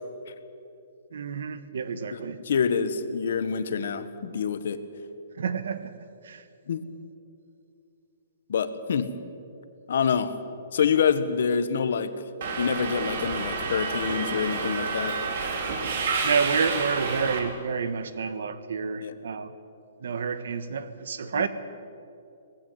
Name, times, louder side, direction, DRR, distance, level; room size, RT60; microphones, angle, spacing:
voice 1, 1.1-2.4 5.3-6.5 15.9-19.5 20.0-21.5, right 5 dB, 70° right, 13 dB, 1.4 m, -29 dB
voice 2, 2.1-4.8 6.7-6.8 8.5-9.1 9.9-10.3 10.7-12.1 12.6-15.2 19.0-19.2 21.3-21.5, left 6 dB, 60° left, 12 dB, 1.4 m, -26 dB
Subway metro underground, 12.4-17.4, right 4 dB, 45° right, 3.1 m, -29 dB
19.5 x 16.0 x 9.5 m, 2.6 s
hypercardioid pair, 170°, 0 cm